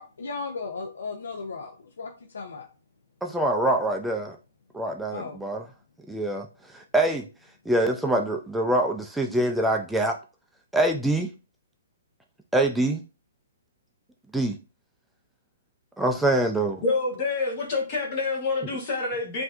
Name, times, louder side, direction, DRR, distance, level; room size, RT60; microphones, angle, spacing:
voice 1, 0.0-2.7 5.1-5.4, left 4 dB, 85° left, 0.6 m, -36 dB
voice 2, 3.2-4.4 4.7-5.6 6.1-6.5 6.7-7.2 7.7-10.2 10.7-11.3 12.5-13.0 14.3-14.6 16.0-16.8, right 1 dB, 5° right, 0.3 m, -24 dB
voice 3, 16.8-19.4, left 3 dB, 35° left, 1.1 m, -27 dB
5.7 x 2.6 x 2.4 m
hypercardioid pair, 155°, 0 cm